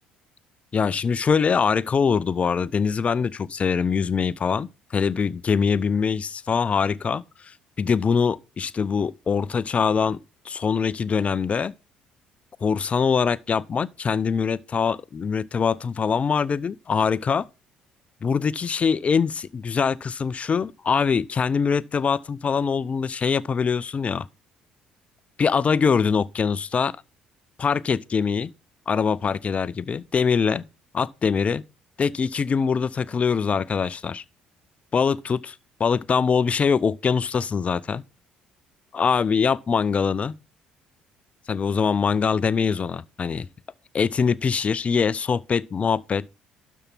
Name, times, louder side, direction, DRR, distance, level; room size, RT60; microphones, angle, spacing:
voice 1, 0.7-7.2 7.8-10.2 10.5-11.7 12.6-17.5 18.2-24.3 25.4-26.9 27.6-28.5 28.9-30.6 30.9-31.6 32.0-34.2 34.9-35.5 35.8-38.0 38.9-40.3 41.5-43.5 43.9-46.3, left 6 dB, 35° left, 0.5 m, -23 dB
12.5 x 4.6 x 5.6 m
figure-of-eight pair, 50°, 4 cm